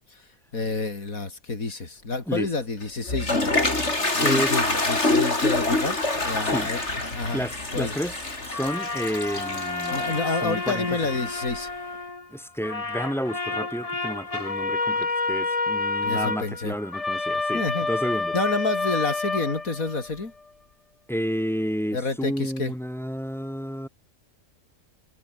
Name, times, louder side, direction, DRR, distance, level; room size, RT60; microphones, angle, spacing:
voice 1, 0.1-6.8 7.1-7.4 7.7-7.9 9.9-11.7 16.0-16.7 17.5-17.9 18.3-20.3 21.9-22.7, left 3 dB, 85° left, 3.9 m, -29 dB
Toilet flush, 2.8-11.7, left 2 dB, 55° left, 5.1 m, -26 dB
voice 2, 4.2-4.5 6.4-6.7 7.3-8.1 8.4-10.1 10.4-10.9 12.3-17.6 17.9-18.4 21.1-23.9, equal, ahead, 7.8 m, -30 dB
sound 1, 8.5-12.3 12.6-20.2, left 3 dB, 25° left, 1.7 m, -29 dB
omnidirectional pair, 1.4 m